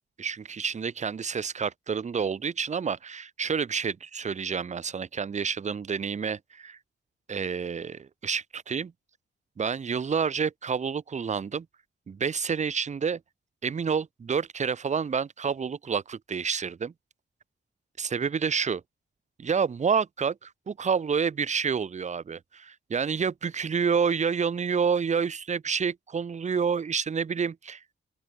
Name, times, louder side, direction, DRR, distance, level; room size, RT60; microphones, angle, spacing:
voice 1, 0.2-6.8 7.3-8.9 9.6-11.7 12.1-13.2 13.6-16.9 18.0-18.8 19.4-27.8, right 6 dB, 35° right, 0.6 m, -29 dB
open air
cardioid pair, 65°, 21 cm